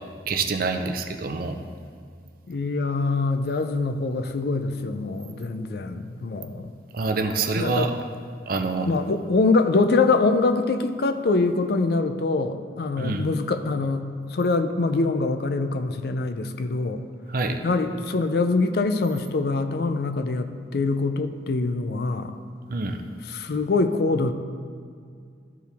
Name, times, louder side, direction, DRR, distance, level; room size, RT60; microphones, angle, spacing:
voice 1, 0.3-1.6 6.9-7.9 8.5-8.9 13.0-13.3 17.3-17.6 22.7-23.0, right 3 dB, 50° right, 6 dB, 0.5 m, -26 dB
voice 2, 2.5-6.7 7.5-7.9 8.9-17.0 17.6-22.4 23.3-24.3, left 3 dB, 55° left, 9 dB, 0.5 m, -24 dB
13.0 x 4.6 x 3.5 m, 2.2 s
head